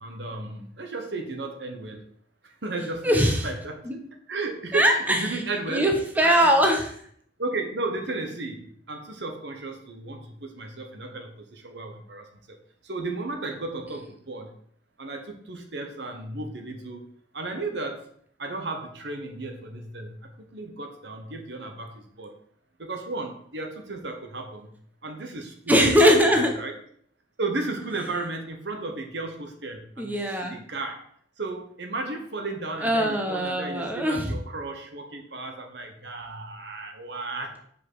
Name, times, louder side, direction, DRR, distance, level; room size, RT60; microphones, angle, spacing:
voice 1, 0.0-2.0 2.4-3.8 4.3-5.9 6.2-6.5 7.4-12.6 12.8-14.5 15.0-17.0 17.3-18.0 18.4-22.3 22.8-24.7 25.0-26.2 26.6-26.7 27.4-30.2 30.5-31.0 31.4-37.6, right 2 dB, 70° right, 4 dB, 1.2 m, -34 dB
voice 2, 3.0-3.5 3.8-4.0 4.7-5.4 5.7-7.0 25.7-26.5 30.0-30.5 32.8-34.3, equal, 10° right, 2 dB, 1.0 m, -21 dB
5.3 x 5.2 x 6.4 m, 0.63 s
head